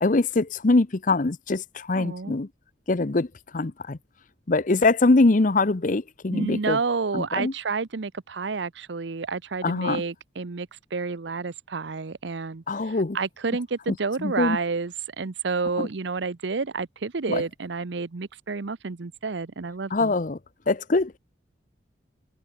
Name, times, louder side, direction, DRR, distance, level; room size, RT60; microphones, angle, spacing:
voice 1, 0.0-2.5 2.9-3.3 3.5-4.0 4.5-6.8 7.1-7.5 9.6-10.0 12.7-13.2 14.2-14.6 15.8-15.9 17.3-17.4 19.9-20.4 20.7-21.2, left 3 dB, 45° left, 0.7 m, -23 dB
voice 2, 1.9-2.4 6.3-20.1, right 4 dB, 70° right, 0.7 m, -30 dB
head